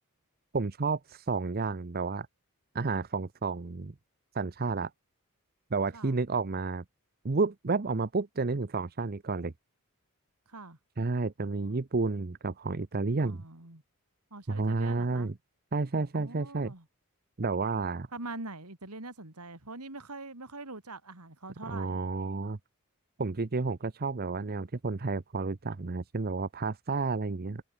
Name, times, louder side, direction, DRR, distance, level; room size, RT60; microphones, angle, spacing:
voice 1, 0.5-2.3 2.7-3.9 4.3-4.9 5.7-6.8 7.2-9.5 11.0-13.4 14.5-15.3 15.7-16.7 17.4-18.1 21.7-22.6 23.2-27.6, right 3 dB, 45° right, 0.7 m, -31 dB
voice 2, 10.5-10.8 13.2-13.8 14.3-15.3 16.1-16.9 18.1-22.0, right 2 dB, 85° right, 3.9 m, -43 dB
head